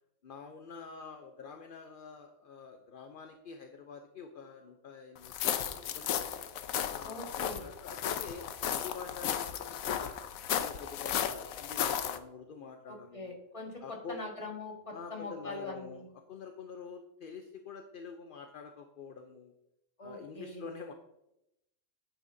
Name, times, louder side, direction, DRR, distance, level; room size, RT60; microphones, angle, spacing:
voice 1, 0.2-6.1 6.8-10.2 10.6-13.3 13.8-14.2 14.9-19.5 20.0-20.9, left 5 dB, 50° left, 4 dB, 0.7 m, -47 dB
sound 1, 5.2-12.2, left 9 dB, 85° left, 1.1 m, -34 dB
voice 2, 7.0-7.7 12.9-16.0 20.0-20.6, left 2 dB, 25° left, 0 dB, 1.6 m, -43 dB
10.0 x 9.0 x 2.7 m, 0.87 s
omnidirectional pair, 1.4 m